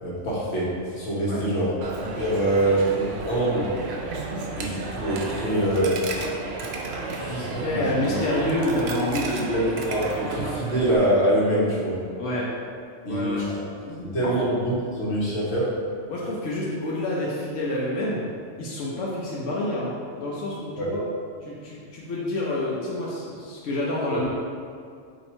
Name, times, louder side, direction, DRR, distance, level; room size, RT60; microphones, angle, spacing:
voice 1, 0.0-1.7 2.1-3.7 4.5-5.9 7.0-8.1 9.5-12.0 13.0-13.6 14.0-15.7 20.8-20.9, right 1 dB, 65° left, -7 dB, 1.4 m, -25 dB
Coin (dropping), 1.8-11.0, right 3 dB, 65° right, 0.8 m, -32 dB
voice 2, 7.3-9.7 12.2-12.5 13.1-13.4 13.9-14.4 16.1-18.2 18.6-21.0 21.4-24.3, left 1 dB, 90° left, -6 dB, 1.1 m, -28 dB
4.3 x 2.9 x 4.2 m, 2.2 s
omnidirectional pair, 1.2 m